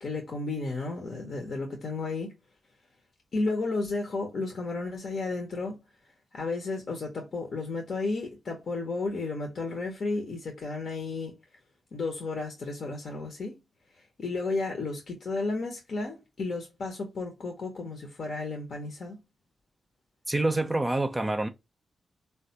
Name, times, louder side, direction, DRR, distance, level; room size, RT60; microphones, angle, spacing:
voice 1, 0.0-2.3 3.3-5.8 6.3-11.3 11.9-13.6 14.2-19.2, left 3 dB, 65° left, 0.8 m, -33 dB
voice 2, 20.3-21.5, right 2 dB, 25° right, 0.5 m, -26 dB
3.3 x 2.3 x 2.7 m
supercardioid pair, 40°, 0 cm